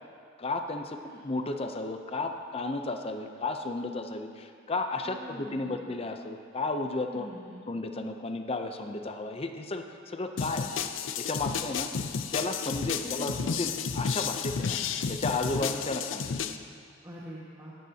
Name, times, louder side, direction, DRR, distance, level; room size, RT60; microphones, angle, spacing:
voice 1, 0.4-7.3 7.7-10.7 11.2-11.9 12.3-14.8 15.1-16.3, left 2 dB, 30° left, 6 dB, 0.6 m, -33 dB
voice 2, 0.9-1.2 5.0-5.8 7.1-7.6 13.0-13.8 17.0-17.7, equal, 20° right, -7 dB, 1.6 m, -44 dB
sound 1, 10.4-16.6, left 6 dB, 70° left, 0.5 m, -32 dB
17.5 x 12.0 x 2.8 m, 2.2 s
head